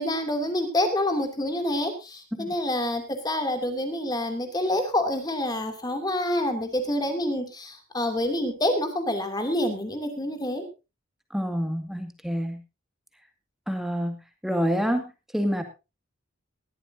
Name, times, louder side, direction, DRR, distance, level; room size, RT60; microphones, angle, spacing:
voice 1, 0.0-10.6, left 1 dB, 20° left, 6 dB, 2.8 m, -27 dB
voice 2, 11.3-12.6 13.7-14.2 14.4-15.6, equal, ahead, 6 dB, 2.2 m, -27 dB
19.5 x 14.0 x 2.7 m, 0.28 s
head